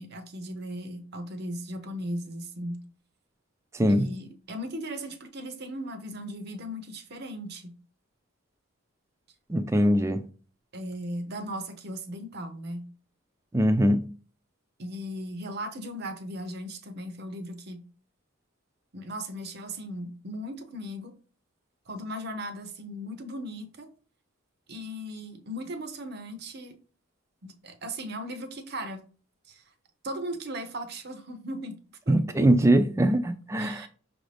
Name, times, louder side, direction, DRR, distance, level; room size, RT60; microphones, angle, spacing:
voice 1, 0.0-2.8 3.9-7.7 10.7-12.9 14.8-17.8 18.9-21.1 21.9-23.9 24.7-26.7 27.4-29.0 29.5-29.6 30.0-31.8 32.1-32.2 33.6-33.9, equal, 45° right, 0.6 m, -37 dB
voice 2, 3.7-4.0 9.5-10.2 13.5-14.0 32.1-33.9, right 1 dB, 15° right, 0.3 m, -22 dB
5.9 x 2.6 x 3.3 m
head